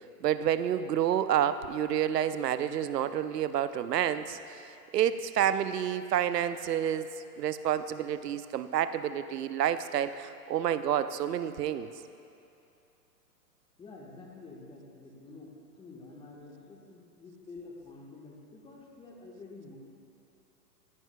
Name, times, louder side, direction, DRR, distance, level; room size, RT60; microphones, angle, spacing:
voice 1, 0.2-4.7 4.9-7.1 7.4-11.9, right 10 dB, 75° right, 12 dB, 0.6 m, -29 dB
voice 2, 13.8-19.8, left 3 dB, 10° left, -1 dB, 1.3 m, -49 dB
14.0 x 11.0 x 2.2 m, 2.7 s
hypercardioid pair, 115°, 49 cm